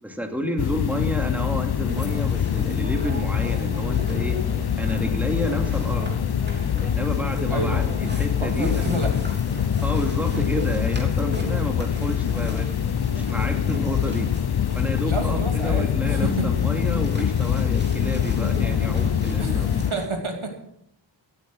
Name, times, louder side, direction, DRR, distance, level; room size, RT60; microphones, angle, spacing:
voice 1, 0.0-4.4 4.8-6.1 6.8-9.0 9.8-12.7 13.1-14.3 14.7-20.0, equal, 5° right, 4 dB, 2.4 m, -30 dB
sound 1, 0.6-19.9, left 9 dB, 55° left, 0.5 m, -24 dB
sound 2, 1.9-20.1, right 1 dB, 20° right, 3.4 m, -35 dB
voice 2, 7.5-7.9 8.4-9.1 15.1-16.5 19.4-20.6, right 3 dB, 85° right, 3 dB, 2.6 m, -29 dB
17.0 x 9.4 x 6.3 m, 0.74 s
wide cardioid pair, 50°, 47 cm